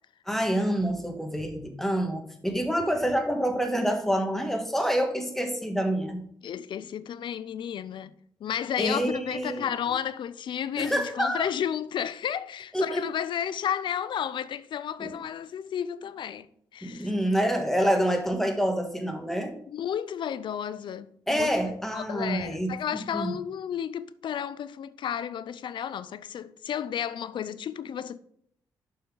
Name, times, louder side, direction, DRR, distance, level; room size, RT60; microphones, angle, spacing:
voice 1, 0.3-6.2 8.8-9.7 10.8-11.5 12.7-13.0 15.0-15.1 16.8-19.5 21.3-23.3, equal, 5° left, 1.5 m, -27 dB
voice 2, 6.4-8.1 8.4-16.5 16.7-17.1 19.7-21.5 21.9-28.2, left 9 dB, 65° left, 0.4 m, -32 dB
7.7 x 5.5 x 3.8 m
supercardioid pair, 55°, 9 cm